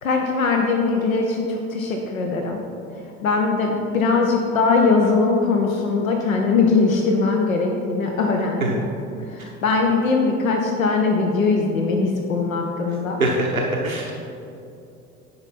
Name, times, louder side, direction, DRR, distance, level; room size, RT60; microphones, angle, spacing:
voice 1, 0.0-2.6 3.2-8.8 9.3-13.2, left 4 dB, 75° left, 2 dB, 0.9 m, -21 dB
voice 2, 13.2-14.1, right 2 dB, 90° right, -1 dB, 0.8 m, -22 dB
9.6 x 5.6 x 4.3 m, 2.6 s
figure-of-eight pair, 70°, 41 cm